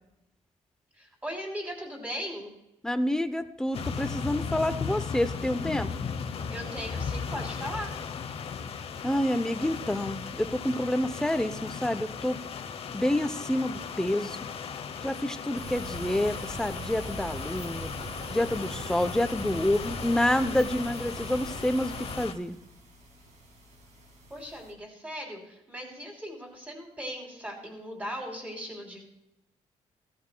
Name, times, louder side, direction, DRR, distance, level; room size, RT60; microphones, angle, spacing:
voice 1, 0.9-2.5 6.5-7.9 24.3-29.0, equal, 15° right, 0 dB, 3.1 m, -38 dB
voice 2, 2.8-6.1 9.0-12.4 12.9-14.4 15.0-17.9 18.3-22.6, left 1 dB, 5° left, 11 dB, 0.6 m, -28 dB
sound 1, 3.7-22.3, left 6 dB, 50° left, 0.8 m, -37 dB
sound 2, 15.6-22.3, right 1 dB, 30° right, 1.5 m, -41 dB
sound 3, 16.3-24.7, equal, 65° right, 2.0 m, -57 dB
15.5 x 13.5 x 2.2 m, 0.82 s
cardioid pair, 140°, 12 cm